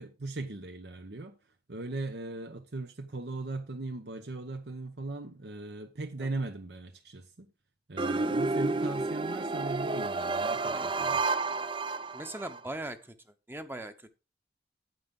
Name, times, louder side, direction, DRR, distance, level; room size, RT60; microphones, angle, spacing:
voice 1, 0.0-1.4 1.7-7.5 7.9-11.2, right 2 dB, 70° right, 0.9 m, -38 dB
sound 1, 8.0-12.6, right 3 dB, 25° right, 0.5 m, -30 dB
voice 2, 12.1-13.1 13.5-14.1, right 1 dB, 10° right, 0.8 m, -40 dB
9.4 x 8.8 x 3.8 m
head